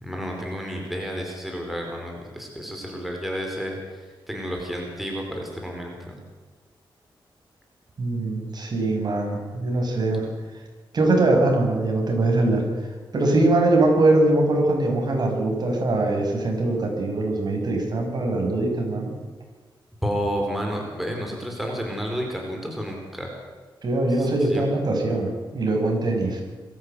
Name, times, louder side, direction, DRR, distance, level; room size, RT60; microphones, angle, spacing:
voice 1, 0.0-6.2 10.1-10.2 20.0-23.3 24.1-24.7, equal, ahead, 0 dB, 4.6 m, -31 dB
voice 2, 8.0-10.3 10.9-12.6 13.1-19.1 23.8-26.4, right 2 dB, 50° right, 1 dB, 6.2 m, -22 dB
23.0 x 14.0 x 8.3 m, 1.4 s
wide cardioid pair, 100°, 9 cm